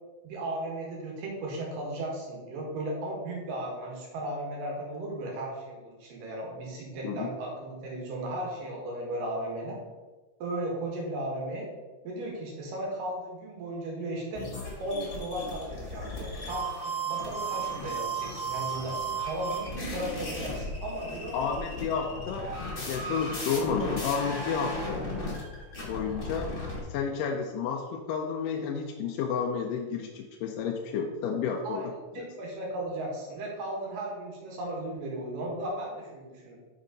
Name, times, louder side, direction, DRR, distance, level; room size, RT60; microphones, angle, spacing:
voice 1, 0.2-9.8 10.4-11.7 12.0-14.4 14.8-18.9 19.2-21.3 22.0-22.1 31.6-31.9 32.1-36.6, right 1 dB, 85° right, -2 dB, 3.2 m, -36 dB
sound 1, 14.4-26.8, right 1 dB, 50° left, 0.6 m, -35 dB
voice 2, 21.3-22.5 22.8-25.0 25.9-26.6 26.9-32.3, left 6 dB, 85° left, 2 dB, 2.2 m, -31 dB
6.2 x 5.4 x 3.8 m, 1.3 s
omnidirectional pair, 3.7 m